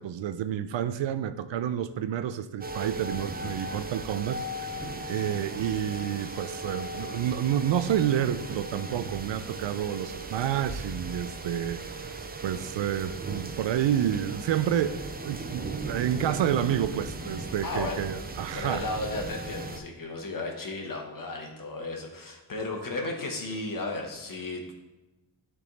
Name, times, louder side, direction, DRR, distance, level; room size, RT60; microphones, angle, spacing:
voice 1, 0.0-4.7 5.0-18.8, right 10 dB, 70° right, 12 dB, 0.5 m, -29 dB
sound 1, 2.6-19.8, right 2 dB, 20° right, 0.5 m, -37 dB
voice 2, 17.6-18.1 18.5-24.7, left 2 dB, 45° left, 2 dB, 1.4 m, -34 dB
10.5 x 3.6 x 4.0 m, 1.1 s
wide cardioid pair, 110°, 46 cm